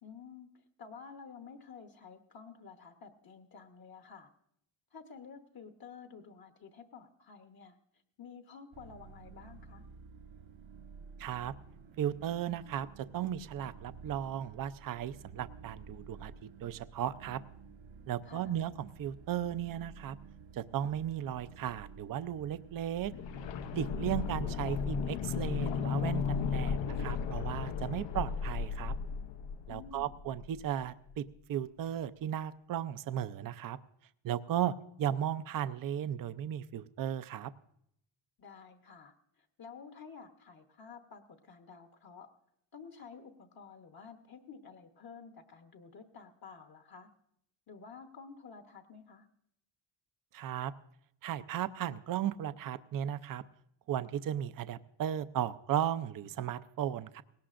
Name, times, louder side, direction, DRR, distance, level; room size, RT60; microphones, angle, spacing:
voice 1, 0.0-4.3 4.9-7.8 8.2-9.8 18.2-18.6 29.7-30.1 38.4-42.3 42.7-47.1 47.7-49.3, left 5 dB, 45° left, 5 dB, 1.1 m, -51 dB
sound 1, 8.7-23.9, right 5 dB, 70° right, 1.2 m, -52 dB
voice 2, 11.2-11.5 12.0-16.3 16.6-17.4 18.1-20.2 20.5-23.1 23.7-28.9 29.7-33.8 34.2-37.5 50.3-50.7 51.2-53.4 53.9-57.2, right 10 dB, 45° right, 14 dB, 0.5 m, -35 dB
sound 2, 23.0-30.8 31.1-31.2, left 6 dB, 65° left, 0.7 m, -35 dB
18.5 x 17.5 x 2.5 m, 0.73 s
cardioid pair, 120°, 48 cm